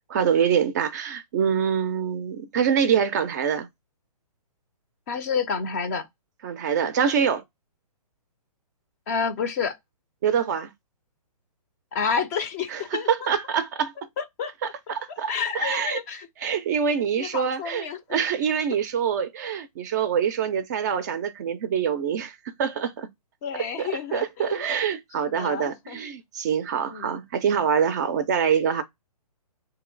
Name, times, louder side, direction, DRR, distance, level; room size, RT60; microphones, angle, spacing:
voice 1, 0.1-3.7 6.4-7.4 10.2-10.7 12.7-13.9 14.6-16.0 16.4-23.1 23.6-28.8, right 7 dB, 30° right, 0.4 m, -25 dB
voice 2, 5.1-6.1 9.1-9.8 11.9-13.3 14.2-14.5 15.3-16.3 17.2-18.0 23.4-24.6 25.3-26.0 26.8-27.2, left 6 dB, 25° left, 0.5 m, -29 dB
3.0 x 2.7 x 3.7 m
hypercardioid pair, 145°, 20 cm